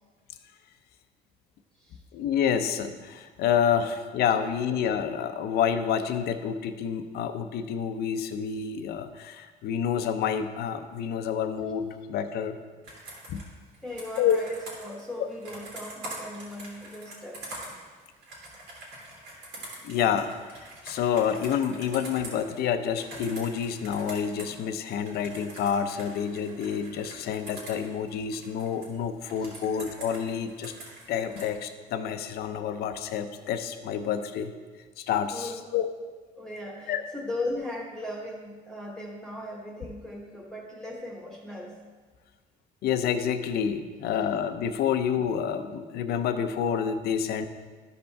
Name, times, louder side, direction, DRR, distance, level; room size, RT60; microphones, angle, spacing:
voice 1, 2.1-12.6 13.3-13.4 14.2-14.4 19.8-20.3 20.6-30.7 31.1-34.5 35.0-35.9 36.9-37.0 42.8-47.5, left 8 dB, 70° left, 9 dB, 0.6 m, -28 dB
Computer keyboard, 12.8-24.6 24.9-28.9 29.3-31.5, right 2 dB, 85° right, 2.9 m, -44 dB
voice 2, 13.8-17.4 29.5-29.6 35.3-35.6 36.4-41.8, left 1 dB, 5° left, -2 dB, 1.2 m, -38 dB
13.0 x 5.3 x 3.4 m, 1.4 s
cardioid pair, 110°, 17 cm